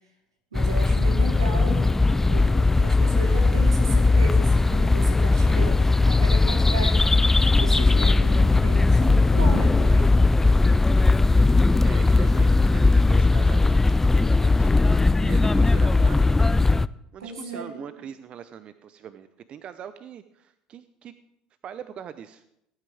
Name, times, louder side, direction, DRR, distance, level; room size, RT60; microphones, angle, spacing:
sound 1, 0.5-16.9, left 3 dB, 15° left, 0.3 m, -19 dB
voice 1, 0.5-10.1 17.2-17.8, right 2 dB, 90° right, 1 dB, 2.5 m, -35 dB
voice 2, 11.8-14.7 15.2-16.2 17.1-21.1 21.6-22.4, right 9 dB, 45° right, 12 dB, 0.6 m, -41 dB
19.0 x 9.2 x 3.5 m, 0.80 s
hypercardioid pair, 65°, 3 cm